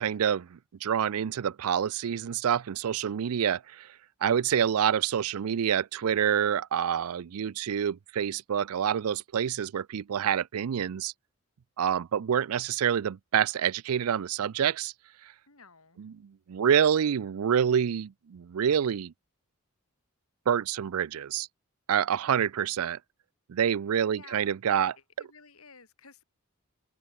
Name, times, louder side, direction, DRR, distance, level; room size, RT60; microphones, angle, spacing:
voice 1, 0.0-3.9 4.2-11.1 11.8-14.9 16.0-19.1 20.5-21.5 21.9-23.0 23.5-25.0, right 8 dB, 85° right, 0.4 m, -27 dB
voice 2, 15.5-16.0 22.6-22.7 24.1-24.5 24.8-24.9 25.2-26.2, left 5 dB, 85° left, 4.5 m, -54 dB
head